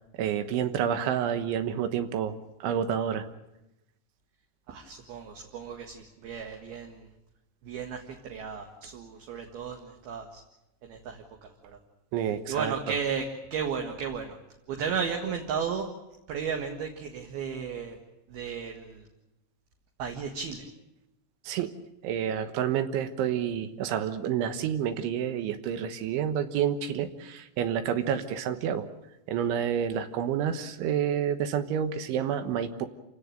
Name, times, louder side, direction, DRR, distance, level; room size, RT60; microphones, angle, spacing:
voice 1, 0.2-2.4 2.6-3.3 12.1-12.8 21.5-21.7 22.0-28.9 29.3-32.9, right 9 dB, 80° right, 9 dB, 3.6 m, -29 dB
voice 2, 4.7-7.1 7.6-10.4 10.8-11.8 12.5-14.4 14.7-15.9 16.3-18.0 18.3-19.1 20.0-20.6, right 6 dB, 60° right, 3 dB, 3.3 m, -34 dB
28.0 x 17.0 x 9.0 m, 0.93 s
omnidirectional pair, 5.5 m